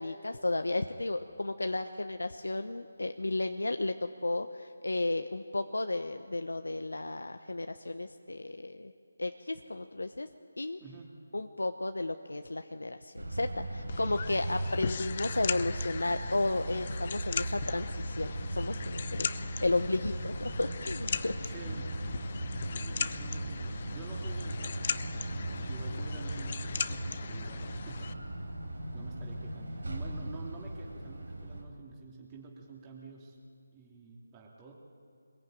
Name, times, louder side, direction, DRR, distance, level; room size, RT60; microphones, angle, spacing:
voice 1, 0.0-8.9 9.2-10.3 10.6-10.8 11.3-19.3 19.6-21.4, left 2 dB, 85° left, 7 dB, 1.0 m, -33 dB
voice 2, 10.8-11.2 21.4-22.0 22.7-24.8 25.6-28.5 28.9-33.3 33.7-34.7, right 3 dB, 20° right, -2 dB, 3.0 m, -48 dB
sound 1, 13.2-31.6, right 1 dB, 85° right, 4.4 m, -38 dB
sound 2, 13.9-28.1, left 6 dB, 40° left, 0.8 m, -39 dB
24.5 x 21.0 x 9.3 m, 2.3 s
figure-of-eight pair, 160°, 0 cm